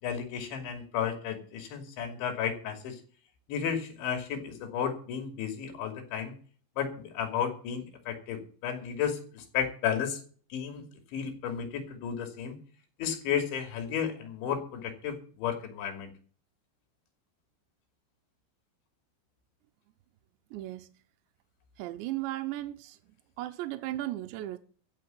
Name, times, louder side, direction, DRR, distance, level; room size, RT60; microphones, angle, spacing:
voice 1, 0.0-3.0 3.5-6.4 6.8-10.2 10.5-10.8 11.1-12.6 13.0-16.1, left 8 dB, 75° left, 5.0 m, -33 dB
voice 2, 20.5-20.9 21.8-23.0 23.4-24.6, right 15 dB, 80° right, 2.9 m, -35 dB
14.5 x 6.7 x 8.2 m
omnidirectional pair, 5.4 m